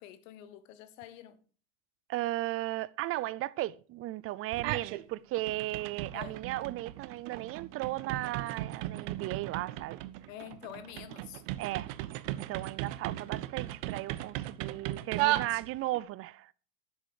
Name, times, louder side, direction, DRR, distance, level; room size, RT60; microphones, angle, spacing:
voice 1, 0.0-1.4 6.1-6.4 10.3-11.4, left 11 dB, 70° left, 1.5 m, -47 dB
voice 2, 2.1-10.0 11.6-11.9 12.4-16.5, right 16 dB, 35° right, 0.5 m, -36 dB
sound 1, 4.5-5.0 5.4-16.0, right 16 dB, 65° right, 0.9 m, -36 dB
10.0 x 7.7 x 4.9 m
supercardioid pair, 125°, 40 cm